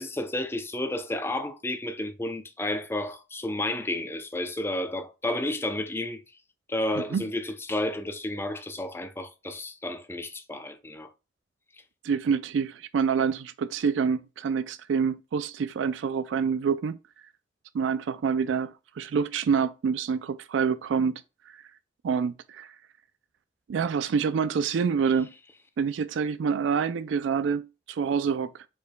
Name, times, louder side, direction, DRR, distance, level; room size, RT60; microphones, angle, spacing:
voice 1, 0.0-6.2 6.7-11.1, left 1 dB, 15° left, 0.5 m, -31 dB
voice 2, 12.0-17.0 17.7-21.6 22.0-22.7 23.7-25.3 25.8-28.7, right 6 dB, 85° right, 0.3 m, -27 dB
5.0 x 4.4 x 2.2 m
head